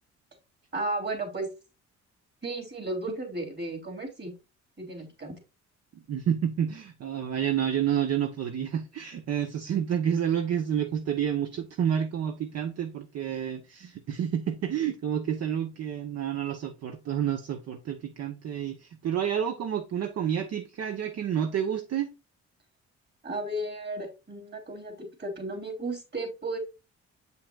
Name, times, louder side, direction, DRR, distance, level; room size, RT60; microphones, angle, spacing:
voice 1, 0.7-1.5 2.4-4.3 4.8-5.3 23.2-26.6, right 2 dB, 35° right, 3.2 m, -34 dB
voice 2, 5.9-22.1, right 9 dB, 55° right, 0.8 m, -29 dB
7.7 x 5.6 x 2.4 m
cardioid pair, 90°, 30 cm